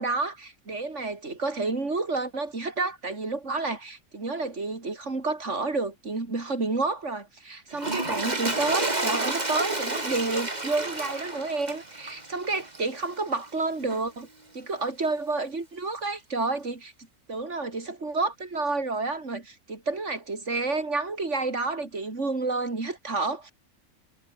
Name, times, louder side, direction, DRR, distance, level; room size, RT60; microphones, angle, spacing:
voice 1, 0.0-14.3 14.5-16.9 17.3-23.5, right 3 dB, 55° right, 3.9 m, -30 dB
Toilet flush, 7.7-13.2 13.9-14.0, right 2 dB, 30° right, 3.1 m, -30 dB
omnidirectional pair, 1.5 m